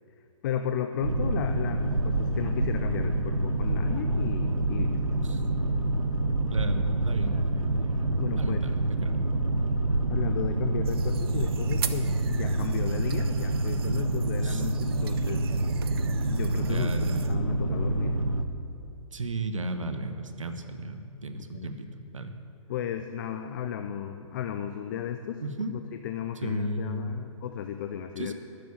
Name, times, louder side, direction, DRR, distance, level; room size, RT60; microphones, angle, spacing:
voice 1, 0.4-5.0 8.2-8.6 10.1-15.4 16.3-18.2 21.3-21.7 22.7-25.4 25.7-28.3, left 9 dB, 40° left, 7 dB, 0.6 m, -34 dB
Boat Water vehicle, 1.0-18.4, right 2 dB, 90° right, 0.8 m, -27 dB
voice 2, 6.5-7.4 8.4-9.2 14.4-14.6 16.7-17.2 19.1-22.3 25.4-25.7 26.4-27.3 28.2-28.3, right 1 dB, 75° right, 8 dB, 1.1 m, -34 dB
sound 1, 10.8-17.3, right 9 dB, 45° right, 0.7 m, -42 dB
12.5 x 6.8 x 8.4 m, 2.6 s
figure-of-eight pair, 120°, 17 cm